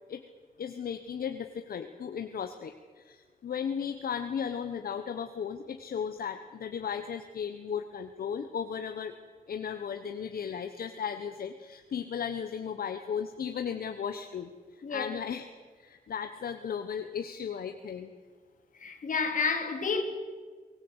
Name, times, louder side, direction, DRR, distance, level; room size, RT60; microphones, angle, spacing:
voice 1, 0.6-9.1 9.5-15.4 15.8-18.1, left 7 dB, 80° left, 1.2 m, -36 dB
voice 2, 18.8-20.0, left 5 dB, 60° left, 3.2 m, -30 dB
24.0 x 19.0 x 8.2 m
wide cardioid pair, 180°, 15 cm